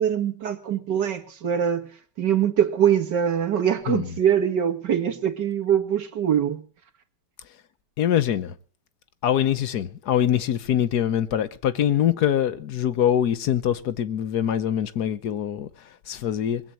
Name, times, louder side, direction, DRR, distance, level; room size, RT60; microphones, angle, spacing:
voice 1, 0.0-1.9 2.2-6.7, right 9 dB, 90° right, 2.3 m, -23 dB
voice 2, 8.0-8.5 9.2-16.6, left 10 dB, 70° left, 1.5 m, -24 dB
21.0 x 8.3 x 7.6 m
omnidirectional pair, 1.8 m